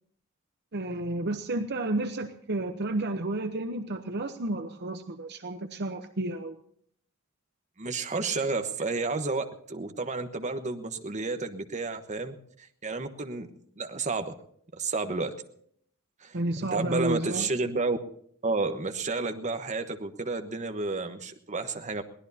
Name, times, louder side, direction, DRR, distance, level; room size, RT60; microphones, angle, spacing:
voice 1, 0.7-6.6 16.3-17.5, right 2 dB, 50° right, 8 dB, 0.9 m, -31 dB
voice 2, 7.8-13.5 13.8-14.3 14.7-15.3 16.2-16.4 16.7-18.0 18.4-22.0, right 3 dB, 35° right, 7 dB, 1.2 m, -31 dB
23.0 x 17.5 x 2.8 m, 0.64 s
head